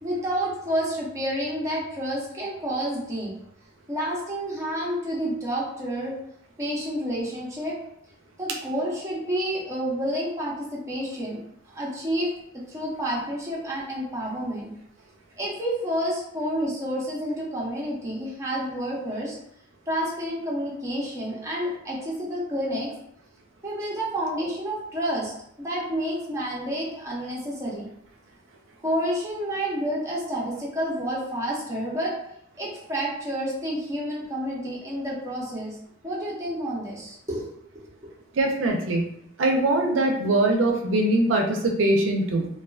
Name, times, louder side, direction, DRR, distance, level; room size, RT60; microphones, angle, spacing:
voice 1, 0.0-3.3 3.9-6.1 6.6-7.8 8.4-12.3 12.7-14.7 15.4-19.4 19.9-22.9 23.6-25.3 25.6-27.9 28.8-32.1 32.6-35.8 36.0-37.5 37.7-38.1, equal, 15° right, -6 dB, 0.7 m, -29 dB
voice 2, 38.3-39.0 39.4-42.5, right 2 dB, 75° right, 2 dB, 0.4 m, -22 dB
2.3 x 2.3 x 2.3 m, 0.73 s
head